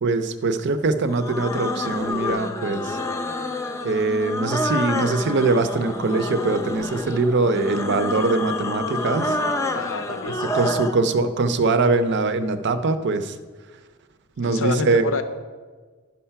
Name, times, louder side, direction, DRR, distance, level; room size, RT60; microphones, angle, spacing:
voice 1, 0.0-3.0 3.8-9.4 10.5-13.4 14.4-15.0, right 3 dB, 55° right, 10 dB, 0.6 m, -22 dB
sound 1, 1.1-11.0, left 1 dB, 15° left, 0.6 m, -28 dB
voice 2, 9.7-10.8 14.4-15.2, left 4 dB, 65° left, 9 dB, 0.6 m, -28 dB
10.5 x 5.6 x 5.7 m, 1.4 s
head